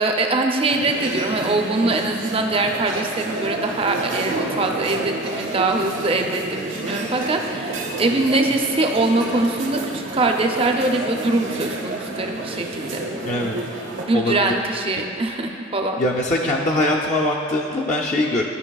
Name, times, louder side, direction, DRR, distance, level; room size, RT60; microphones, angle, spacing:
voice 1, 0.0-13.0 14.0-16.0, right 2 dB, 30° right, 3 dB, 0.5 m, -22 dB
sound 1, 0.7-14.0, right 2 dB, 80° right, 1.1 m, -30 dB
voice 2, 13.3-13.6 14.1-14.5 15.0-15.1 16.0-18.4, left 1 dB, 40° left, -2 dB, 0.5 m, -22 dB
13.5 x 5.3 x 2.3 m, 2.6 s
head